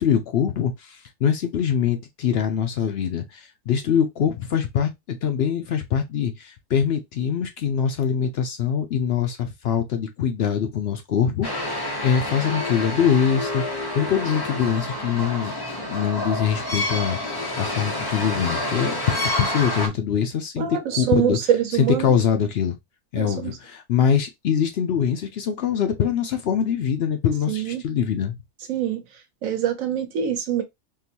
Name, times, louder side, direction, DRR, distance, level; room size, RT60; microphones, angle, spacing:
voice 1, 0.0-15.5 15.8-17.2 17.6-19.0 19.4-21.4 21.8-22.8 23.1-28.4, left 8 dB, 60° left, 0.7 m, -23 dB
sound 1, 11.4-19.9, left 1 dB, 25° left, 0.6 m, -28 dB
voice 2, 20.6-22.2 23.1-23.5 27.5-27.8 28.7-29.0 29.4-30.6, right 9 dB, 85° right, 1.2 m, -24 dB
3.7 x 2.6 x 2.7 m
omnidirectional pair, 1.4 m